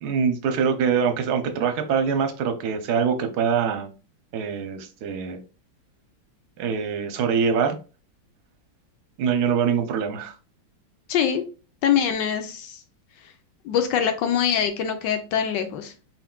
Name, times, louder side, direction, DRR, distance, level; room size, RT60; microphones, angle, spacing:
voice 1, 0.0-3.9 4.3-5.4 6.6-7.8 9.2-10.3, right 6 dB, 65° right, 7 dB, 1.1 m, -24 dB
voice 2, 11.1-11.4 11.8-12.8 13.6-15.9, left 8 dB, 75° left, 7 dB, 1.3 m, -23 dB
4.3 x 4.0 x 2.2 m, 0.33 s
omnidirectional pair, 2.1 m